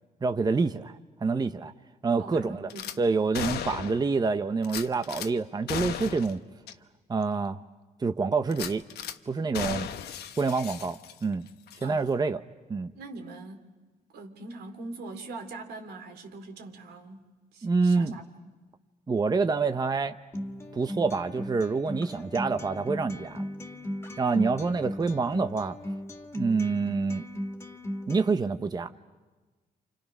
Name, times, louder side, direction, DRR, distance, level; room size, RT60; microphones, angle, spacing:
voice 1, 0.2-1.7 2.0-2.7 3.0-6.4 7.1-7.6 8.0-8.8 9.3-9.9 10.4-11.5 11.8-12.4 12.7-12.9 17.6-18.1 19.1-20.1 20.7-23.4 24.2-25.8 26.3-27.2 28.1-29.0, right 4 dB, 25° right, 9 dB, 0.8 m, -27 dB
voice 2, 2.2-3.0 11.8-12.1 12.9-13.7 14.1-18.5, right 2 dB, 80° right, 4 dB, 3.2 m, -42 dB
Gunshot gunfire / Glass, 2.7-3.0 3.3-4.1 4.6-5.3 5.7-6.3 6.7-6.8 7.2-7.3 8.5-9.2 9.5-11.3 11.7-11.9, left 9 dB, 80° left, 1.2 m, -36 dB
Acoustic guitar, 20.3-28.3, equal, 15° left, 2.2 m, -37 dB
29.5 x 27.5 x 6.1 m, 1.3 s
cardioid pair, 95°, 16 cm